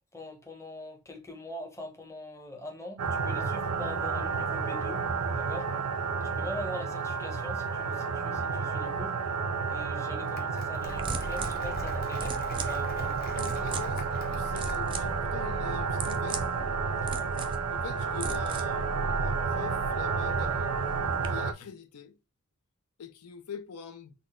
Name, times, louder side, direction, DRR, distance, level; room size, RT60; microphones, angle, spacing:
voice 1, 0.1-5.1 5.3-5.8 6.4-9.4 9.7-13.2 17.0-17.3, left 2 dB, 15° left, 0.8 m, -43 dB
sound 1, 3.0-21.5, right 5 dB, 80° right, 0.5 m, -31 dB
Applause, 10.0-15.1, left 4 dB, 40° left, 0.8 m, -47 dB
sound 2, 10.8-21.3, right 3 dB, 20° right, 0.3 m, -38 dB
voice 2, 13.3-16.5 17.7-20.8 21.2-22.2 23.0-24.1, left 6 dB, 80° left, 0.5 m, -43 dB
3.9 x 2.1 x 3.5 m
head